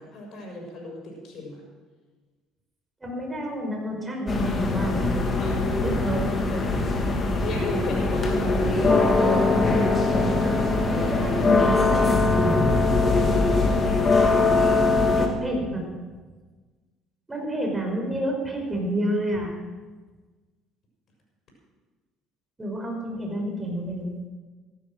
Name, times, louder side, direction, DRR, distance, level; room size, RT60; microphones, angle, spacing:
voice 1, 0.0-1.6 5.4-5.5 6.5-6.6 7.4-8.9, left 2 dB, 55° left, 0 dB, 6.4 m, -36 dB
voice 2, 3.0-5.0 5.8-6.4 8.9-12.7 15.2-15.9 17.3-19.5 22.6-24.1, right 1 dB, 20° right, 1 dB, 5.2 m, -29 dB
sound 1, 4.3-15.3, left 3 dB, 35° left, 2.8 m, -22 dB
14.5 x 12.0 x 6.4 m, 1.3 s
hypercardioid pair, 65°, 0 cm